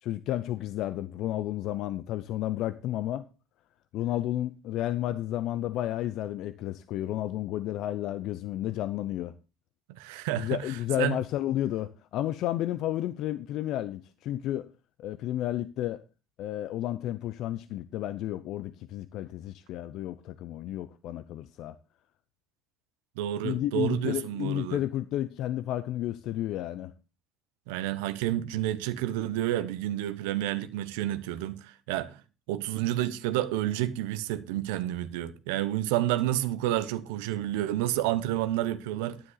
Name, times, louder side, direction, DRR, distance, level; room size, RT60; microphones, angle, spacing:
voice 1, 0.0-3.3 3.9-9.3 10.4-14.7 15.0-16.0 16.4-21.7 23.4-26.9, left 13 dB, 70° left, 0.7 m, -32 dB
voice 2, 9.9-10.6 11.0-11.2 23.2-24.8 27.7-32.2 32.5-39.2, right 13 dB, 90° right, 1.0 m, -30 dB
10.5 x 9.8 x 4.0 m
supercardioid pair, 80°, 0 cm